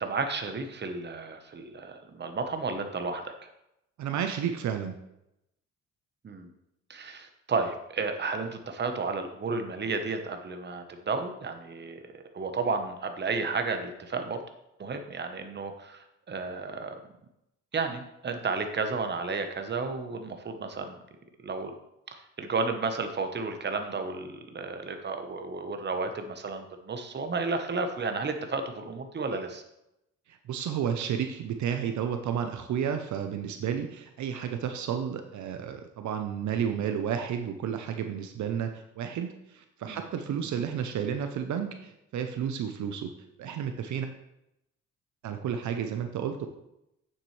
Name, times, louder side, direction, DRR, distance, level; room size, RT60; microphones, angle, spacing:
voice 1, 0.0-3.5 6.2-6.5 6.9-12.0 12.3-14.4 14.8-17.0 17.7-21.0 21.4-21.7 22.1-29.6 39.9-40.0 40.5-40.6, right 4 dB, 35° right, 6 dB, 1.1 m, -32 dB
voice 2, 4.0-5.0 30.3-43.1 43.4-44.1 45.2-46.5, right 8 dB, 70° right, 6 dB, 0.8 m, -32 dB
8.7 x 7.5 x 3.3 m, 0.85 s
cardioid pair, 90°, 30 cm